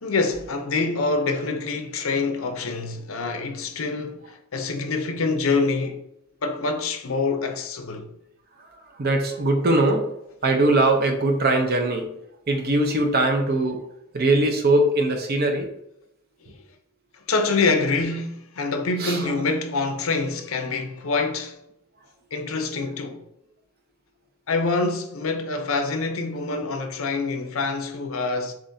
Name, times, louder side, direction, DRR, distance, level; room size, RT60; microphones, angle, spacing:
voice 1, 0.0-6.0 6.4-8.1 17.3-21.6 22.3-23.2 24.5-28.5, left 3 dB, 70° left, 0.7 m, -26 dB
voice 2, 9.0-10.1 10.4-12.1 12.5-13.8 14.1-15.7 19.0-19.2, right 2 dB, 45° right, 0.7 m, -21 dB
7.4 x 2.5 x 2.7 m
head